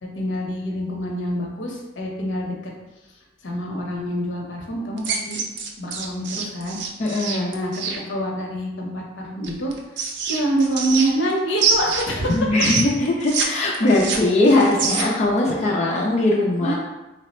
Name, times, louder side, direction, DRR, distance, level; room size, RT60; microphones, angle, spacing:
voice 1, 0.0-2.7 3.4-5.4 5.8-6.8 7.5-9.7 10.3-12.5 15.5-15.6 16.6-16.7, right 1 dB, 70° left, -1 dB, 0.7 m, -26 dB
sound 1, 5.0-8.0 9.4-11.3 11.6-13.5 13.7-15.3, right 5 dB, 65° right, 0.4 m, -25 dB
voice 2, 7.0-7.5 12.4-16.7, left 2 dB, 35° left, -4 dB, 0.4 m, -20 dB
3.2 x 2.0 x 4.1 m, 1.0 s
head